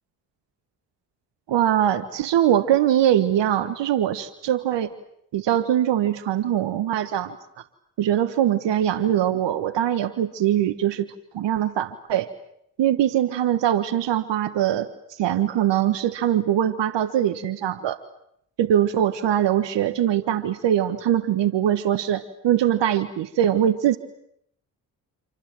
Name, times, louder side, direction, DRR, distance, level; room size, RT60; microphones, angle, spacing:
voice 1, 1.5-4.9 5.3-7.4 8.0-11.1 11.3-12.3 12.8-14.9 15.2-18.0 18.6-24.0, right 11 dB, 65° right, 13 dB, 1.5 m, -22 dB
28.0 x 26.5 x 7.7 m, 0.72 s
hypercardioid pair, 40°, 47 cm